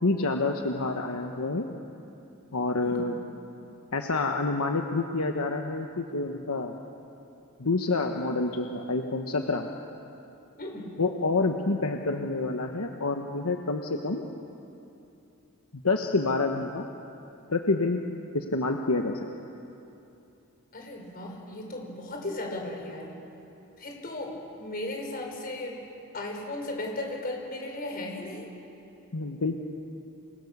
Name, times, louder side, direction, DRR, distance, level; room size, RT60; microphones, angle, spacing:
voice 1, 0.0-1.7 2.5-3.1 3.9-6.8 7.6-9.7 11.0-14.2 15.8-16.8 17.5-18.0 18.3-19.2 29.1-29.6, left 3 dB, 80° left, 4 dB, 1.2 m, -28 dB
voice 2, 10.6-10.9 20.7-23.2 23.8-25.8 26.1-28.5, left 1 dB, 45° left, 1 dB, 5.2 m, -36 dB
29.0 x 22.5 x 6.8 m, 2.8 s
head